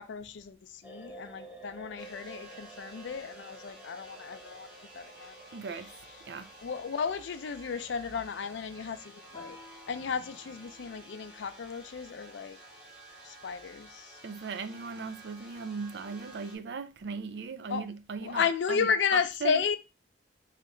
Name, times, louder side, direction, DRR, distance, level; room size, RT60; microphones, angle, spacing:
voice 1, 0.0-4.7 4.9-5.4 6.6-9.6 9.9-12.6 13.3-14.1 17.7-17.8 18.2-19.8, left 6 dB, 80° left, 0.4 m, -33 dB
sound 1, 0.8-10.8 11.0-11.2, right 2 dB, 10° right, 0.7 m, -52 dB
sound 2, 2.0-16.6, right 1 dB, 30° right, 1.7 m, -52 dB
voice 2, 5.5-5.9 6.3-6.5 14.2-19.6, right 5 dB, 65° right, 0.4 m, -38 dB
Guitar, 9.3-11.8, left 1 dB, 25° left, 0.8 m, -55 dB
3.2 x 2.8 x 3.7 m
head